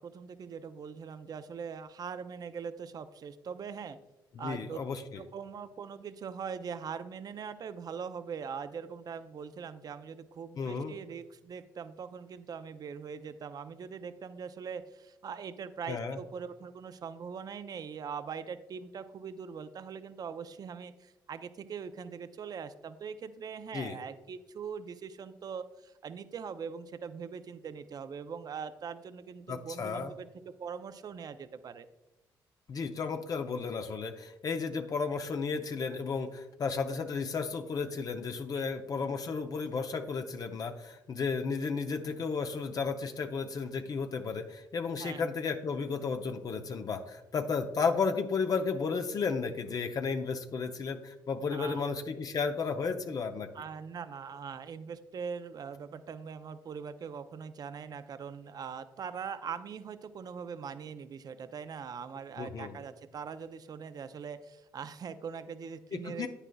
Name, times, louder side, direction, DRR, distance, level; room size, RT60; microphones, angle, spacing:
voice 1, 0.0-4.0 4.4-4.8 5.2-31.9 38.5-38.7 45.0-45.3 51.5-51.9 53.5-66.3, right 6 dB, 50° right, 11 dB, 0.5 m, -42 dB
voice 2, 4.3-5.2 10.6-10.9 15.9-16.2 23.7-24.0 29.5-30.1 32.7-53.5 62.4-62.8 65.9-66.3, left 5 dB, 45° left, 6 dB, 0.7 m, -33 dB
9.8 x 9.0 x 2.3 m, 0.96 s
supercardioid pair, 75°, 9 cm